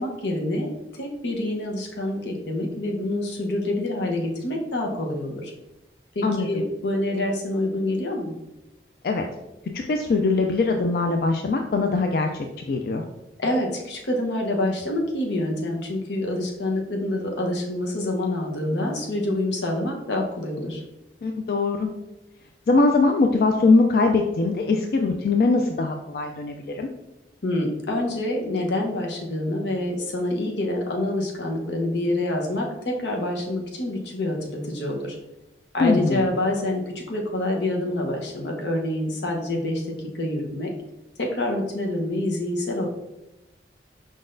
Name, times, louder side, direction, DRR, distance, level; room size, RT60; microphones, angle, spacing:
voice 1, 0.0-5.5 6.1-8.4 13.4-20.8 27.4-35.2 35.7-40.7 41.2-42.9, left 1 dB, 85° left, 1 dB, 0.9 m, -27 dB
voice 2, 6.2-6.6 9.0-9.2 9.7-13.0 21.2-21.9 22.7-26.9 35.8-36.2, left 3 dB, 55° left, 4 dB, 0.3 m, -22 dB
5.1 x 3.9 x 2.6 m, 0.96 s
head